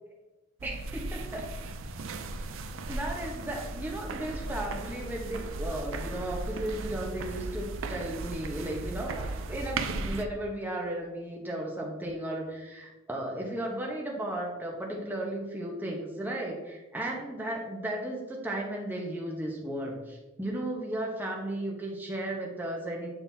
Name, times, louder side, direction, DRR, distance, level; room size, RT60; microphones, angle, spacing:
voice 1, 0.6-1.4 2.9-23.1, right 1 dB, 10° right, -1 dB, 1.0 m, -35 dB
sound 1, 0.6-10.2, right 3 dB, 90° right, 0.5 m, -36 dB
8.8 x 3.9 x 2.7 m, 1.1 s
head